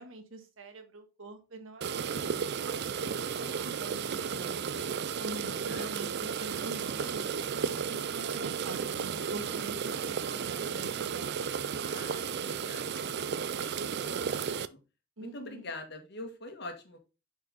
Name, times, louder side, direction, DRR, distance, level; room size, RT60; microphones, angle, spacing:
voice 1, 0.0-2.9 3.3-4.7 5.2-7.3 7.9-11.5 15.2-15.7, right 2 dB, 75° right, 6 dB, 1.6 m, -45 dB
sound 1, 1.8-14.7, right 6 dB, 55° right, 0.4 m, -34 dB
voice 2, 5.3-5.9 11.9-14.8 15.2-17.0, left 2 dB, 55° left, 5 dB, 1.7 m, -45 dB
6.3 x 5.3 x 3.9 m, 0.30 s
head